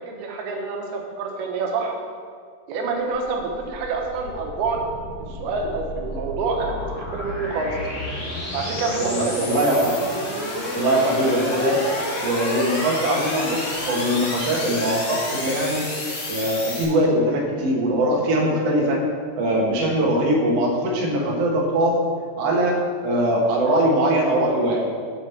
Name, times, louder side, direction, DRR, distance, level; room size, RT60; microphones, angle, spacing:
voice 1, 0.1-2.0 2.7-4.8 5.3-7.8 8.5-9.6, right 4 dB, 80° right, 1 dB, 2.9 m, -27 dB
sound 1, 3.1-16.8, left 1 dB, 50° left, 2.0 m, -30 dB
voice 2, 9.0-10.0 10.7-11.8 12.2-15.8 16.3-19.0 19.4-22.0 22.4-24.8, right 1 dB, 60° right, -2 dB, 1.8 m, -21 dB
7.4 x 4.8 x 6.8 m, 2.2 s
omnidirectional pair, 4.5 m